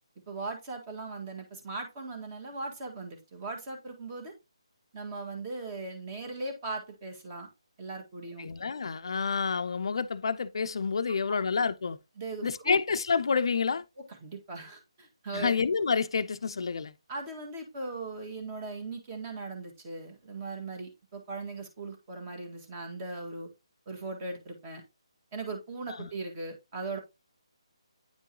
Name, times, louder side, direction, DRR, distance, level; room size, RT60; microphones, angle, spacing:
voice 1, 0.3-4.3 4.9-7.5 7.8-8.5 11.3-11.4 12.2-12.8 14.0-15.5 17.1-23.5 23.9-24.8 25.3-27.0, right 3 dB, 25° right, 1.8 m, -39 dB
voice 2, 8.4-12.0 12.4-13.8 15.3-16.9 25.9-26.1, left 5 dB, 55° left, 0.5 m, -29 dB
9.4 x 4.5 x 2.8 m
figure-of-eight pair, 150°, 3 cm